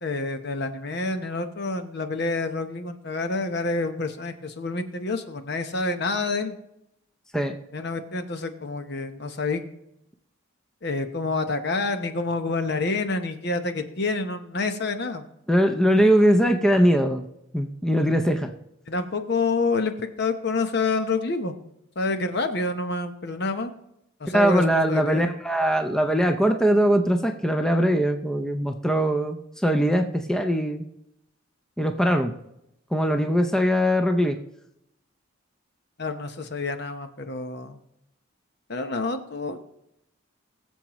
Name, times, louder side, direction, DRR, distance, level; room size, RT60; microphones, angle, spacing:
voice 1, 0.0-6.5 7.7-9.6 10.8-15.3 18.9-21.5 22.0-23.7 24.2-25.3 36.0-37.8 38.7-39.7, left 3 dB, 55° left, 8 dB, 0.9 m, -28 dB
voice 2, 15.5-17.2 17.5-18.5 24.3-30.8 31.8-32.3 32.9-34.4, equal, 5° left, 5 dB, 0.6 m, -21 dB
21.5 x 7.2 x 3.1 m, 0.82 s
head